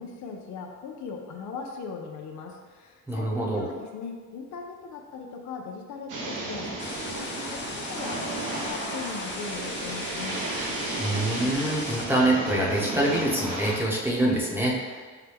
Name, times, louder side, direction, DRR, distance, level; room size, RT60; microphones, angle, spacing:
voice 1, 0.0-10.4, left 5 dB, 70° left, 2 dB, 0.6 m, -39 dB
voice 2, 3.1-3.7 11.0-15.0, right 1 dB, 5° right, -4 dB, 0.9 m, -25 dB
sound 1, 6.1-13.8, right 2 dB, 90° right, 0.9 m, -33 dB
sound 2, 6.8-12.0, left 3 dB, 40° left, 0.6 m, -38 dB
5.6 x 2.2 x 3.4 m, 1.4 s
cardioid pair, 90°, 30 cm